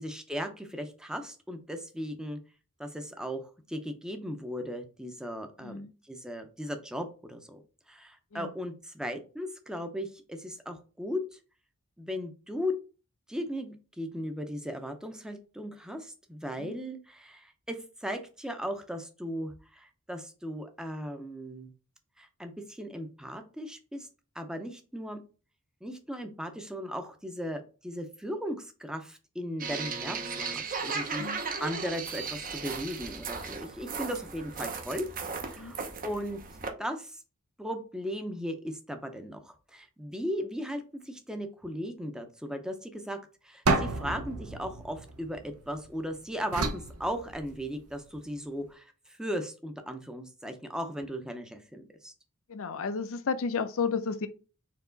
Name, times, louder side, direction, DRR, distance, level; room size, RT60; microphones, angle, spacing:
voice 1, 0.0-2.4 2.8-5.8 6.1-7.6 7.9-11.4 12.0-12.7 13.3-21.7 22.2-24.1 24.3-25.2 25.8-35.1 35.5-35.8 36.0-36.4 36.8-37.2 37.6-43.2 43.4-52.1, equal, 5° right, 0.6 m, -37 dB
voice 2, 5.6-5.9 8.3-8.5 16.6-16.8 31.2-31.4 35.6-35.7 52.5-54.3, left 5 dB, 65° left, 0.6 m, -32 dB
sound 1, 29.6-36.7, right 5 dB, 40° right, 0.7 m, -36 dB
sound 2, 43.7-45.9 46.5-47.9, right 3 dB, 75° right, 0.8 m, -31 dB
4.6 x 3.0 x 3.8 m
head